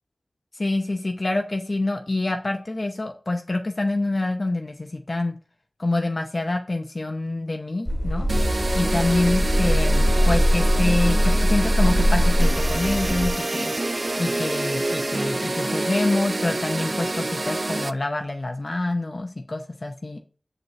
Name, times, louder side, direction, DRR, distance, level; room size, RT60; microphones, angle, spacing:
voice 1, 0.6-5.4 5.8-8.3 8.7-13.7 14.2-20.2, left 2 dB, 50° left, 4 dB, 0.7 m, -26 dB
sound 1, 7.9-13.3, equal, 5° left, 2.0 m, -21 dB
sound 2, 8.3-17.9, right 2 dB, 45° right, 0.3 m, -27 dB
7.2 x 5.4 x 3.1 m, 0.38 s
wide cardioid pair, 55°, 0 cm